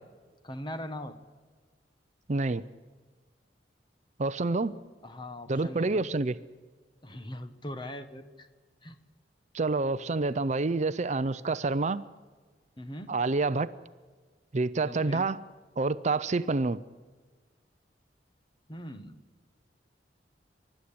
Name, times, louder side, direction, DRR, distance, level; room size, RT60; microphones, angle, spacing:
voice 1, 0.4-1.1 5.0-6.1 7.0-8.5 8.8-9.0 12.8-13.1 14.8-15.3 18.7-19.2, left 1 dB, 25° left, 1.5 m, -40 dB
voice 2, 2.3-2.6 4.2-4.8 5.5-6.4 9.5-12.0 13.1-13.7 14.5-15.4 15.8-16.8, right 3 dB, 40° right, 0.6 m, -28 dB
30.0 x 13.0 x 8.7 m
head